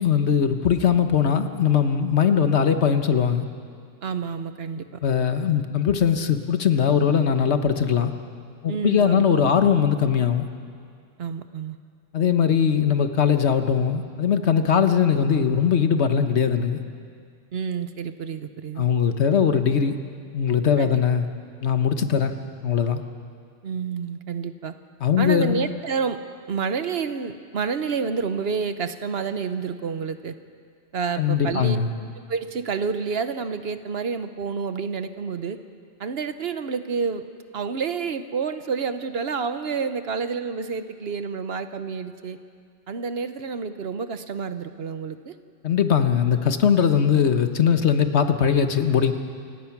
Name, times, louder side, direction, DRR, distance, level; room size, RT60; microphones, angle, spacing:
voice 1, 0.0-3.4 5.0-8.1 8.6-10.5 12.1-16.8 18.8-20.0 20.3-21.3 21.6-22.3 22.6-23.0 25.0-25.7 31.2-31.9 45.6-49.1, left 7 dB, 85° left, 8 dB, 1.4 m, -20 dB
voice 2, 4.0-5.0 8.7-9.3 11.2-11.8 17.5-18.8 20.8-20.9 23.6-24.7 25.2-26.2 26.5-30.3 30.9-31.8 32.3-35.6 36.0-37.2 37.5-42.4 42.9-45.3, right 5 dB, 65° right, 10 dB, 1.2 m, -29 dB
28.0 x 17.5 x 6.0 m, 2.2 s
omnidirectional pair, 1.1 m